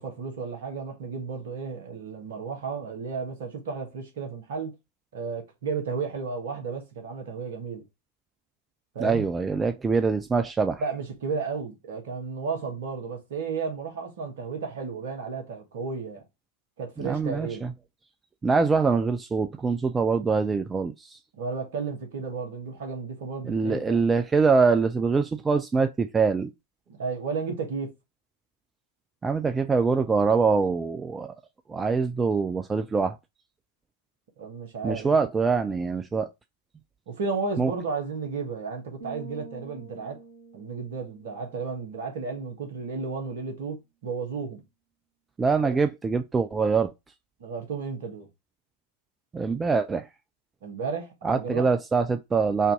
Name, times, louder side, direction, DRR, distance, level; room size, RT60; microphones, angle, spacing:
voice 1, 0.0-4.7 5.1-7.8 8.9-9.2 10.8-16.2 16.8-17.6 21.3-24.0 26.9-27.9 34.4-35.2 37.1-40.2 40.5-43.8 44.0-44.6 45.6-45.8 47.4-48.3 50.6-51.7, right 5 dB, 55° right, 1.4 m, -33 dB
voice 2, 9.0-10.8 17.0-17.7 18.4-21.2 23.5-26.5 29.2-31.3 31.7-33.2 34.8-36.3 37.6-37.7 45.4-46.9 49.3-50.1 51.2-52.7, right 4 dB, 15° right, 0.4 m, -24 dB
sound 1, 39.0-42.7, right 3 dB, 75° right, 1.4 m, -47 dB
4.3 x 2.6 x 4.5 m
figure-of-eight pair, 90°, 0 cm